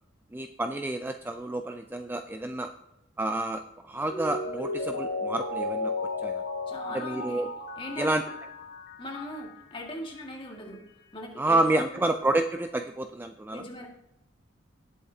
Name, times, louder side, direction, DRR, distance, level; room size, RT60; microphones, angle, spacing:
voice 1, 0.3-2.7 3.2-5.9 6.2-6.4 6.9-7.5 7.9-8.2 11.4-13.6, right 2 dB, 10° right, 6 dB, 0.4 m, -29 dB
Mallet percussion, 4.1-9.6 10.0-10.1, left 2 dB, 60° left, 1.6 m, -34 dB
voice 2, 6.7-7.5 7.8-8.2 9.0-10.8 11.1-11.6 13.5-13.9, left 1 dB, 25° left, 1 dB, 1.9 m, -39 dB
18.0 x 7.8 x 2.8 m, 0.92 s
head